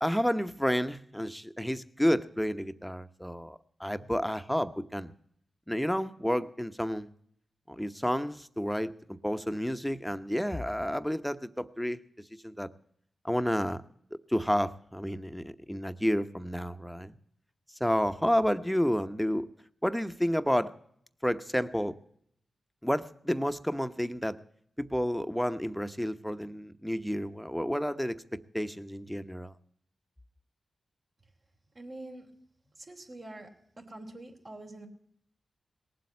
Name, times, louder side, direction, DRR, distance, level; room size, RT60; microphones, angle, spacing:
voice 1, 0.0-5.1 5.7-7.1 7.7-12.0 12.4-12.7 13.2-13.8 14.3-17.1 17.8-19.5 19.8-20.7 21.2-21.9 22.8-24.4 24.8-29.5, equal, 5° left, 10 dB, 1.0 m, -30 dB
voice 2, 31.7-32.3 32.9-33.5 33.8-34.9, right 1 dB, 55° right, -1 dB, 3.1 m, -45 dB
18.5 x 7.7 x 8.4 m, 0.69 s
supercardioid pair, 40°, 0 cm